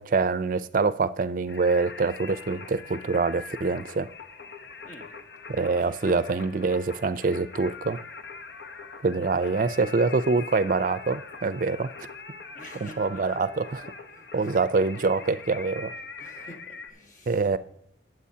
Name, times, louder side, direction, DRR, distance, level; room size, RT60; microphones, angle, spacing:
voice 1, 0.0-4.1 5.5-8.0 9.0-11.9 12.8-13.8 14.3-15.9 17.3-17.6, right 4 dB, 50° right, 0.4 m, -25 dB
Singing, 1.5-16.9, left 4 dB, 70° left, 0.9 m, -43 dB
voice 2, 12.5-13.4 13.8-14.5 16.2-17.4, left 1 dB, 45° left, 1.5 m, -48 dB
20.5 x 7.7 x 2.8 m
head